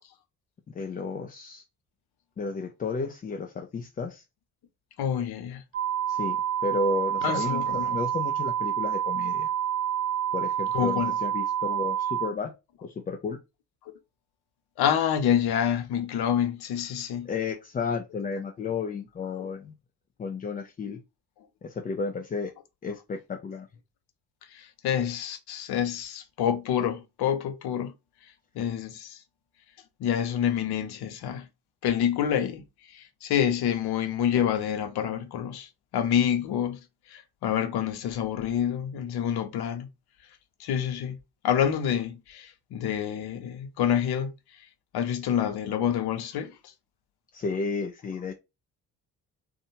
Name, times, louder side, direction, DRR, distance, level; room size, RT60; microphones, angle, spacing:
voice 1, 0.7-1.6 2.4-4.2 6.1-7.6 7.9-9.5 10.3-12.5 12.8-13.4 17.3-19.7 20.2-21.0 21.6-22.5 22.8-23.7 47.3-48.3, left 4 dB, 20° left, 0.3 m, -32 dB
voice 2, 5.0-5.6 7.2-8.0 10.7-11.1 14.8-17.3 19.4-19.5 24.5-27.9 28.5-29.2 30.0-31.4 31.8-36.8 37.1-39.9 40.6-41.2 41.4-44.3 44.9-46.5, left 9 dB, 55° left, 0.7 m, -27 dB
sound 1, 5.7-12.3, right 10 dB, 85° right, 0.8 m, -28 dB
2.5 x 2.1 x 2.8 m
hypercardioid pair, 40°, 46 cm